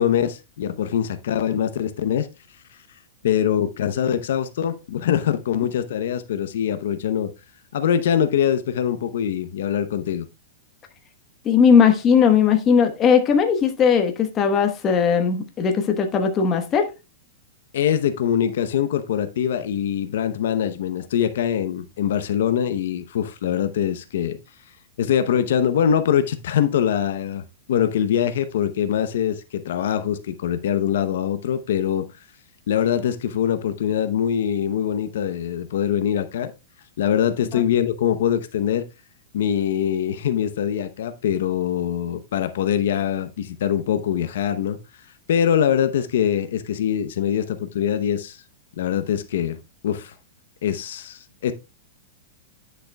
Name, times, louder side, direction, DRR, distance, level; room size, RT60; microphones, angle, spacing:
voice 1, 0.0-2.3 2.7-7.3 7.7-10.3 17.7-24.4 25.0-32.1 32.7-36.5 37.0-38.9 39.3-44.8 45.3-48.4 48.8-50.1 50.6-51.5, left 9 dB, 65° left, 0.7 m, -23 dB
voice 2, 11.4-16.9, left 6 dB, 20° left, 1.1 m, -18 dB
10.5 x 6.6 x 2.2 m
supercardioid pair, 160°, 0 cm